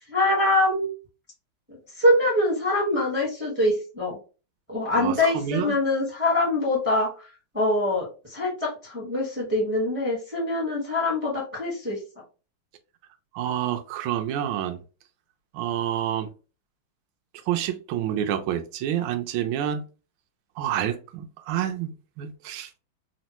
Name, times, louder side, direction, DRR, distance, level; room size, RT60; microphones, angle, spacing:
voice 1, 0.1-0.9 1.9-4.2 4.7-7.3 7.5-12.0, left 1 dB, 10° right, 0.5 m, -24 dB
voice 2, 4.9-5.8 13.3-14.8 15.5-16.3 17.5-19.8 20.6-21.9 22.2-22.7, right 10 dB, 75° right, 1.3 m, -28 dB
3.6 x 2.1 x 2.8 m
omnidirectional pair, 2.3 m